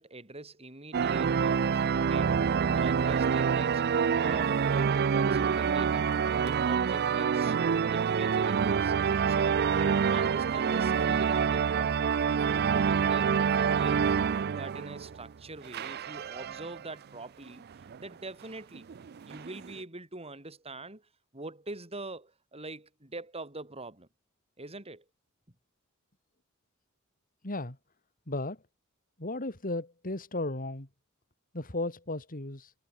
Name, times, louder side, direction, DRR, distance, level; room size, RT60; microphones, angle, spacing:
voice 1, 0.0-3.9 4.2-6.1 6.4-8.9 9.3-17.6 18.0-18.9 19.3-24.1 24.6-25.0, right 2 dB, 30° right, 6.5 m, -44 dB
sound 1, 0.9-15.3 15.7-16.9 17.5-17.6 17.8-18.0 18.7-19.8, right 6 dB, 50° right, 0.4 m, -27 dB
voice 2, 27.4-27.8 28.3-28.6 29.2-30.9 31.5-32.7, left 2 dB, 40° left, 3.2 m, -35 dB
head